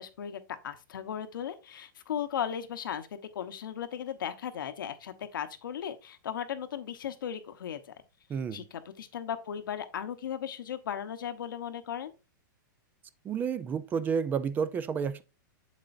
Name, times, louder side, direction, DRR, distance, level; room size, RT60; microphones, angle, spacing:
voice 1, 0.0-3.1 3.3-7.9 8.5-8.6 9.0-12.1, left 9 dB, 85° left, 1.1 m, -36 dB
voice 2, 8.3-8.7 13.2-15.2, right 6 dB, 15° right, 0.4 m, -30 dB
7.7 x 7.4 x 2.6 m
hypercardioid pair, 150°, 11 cm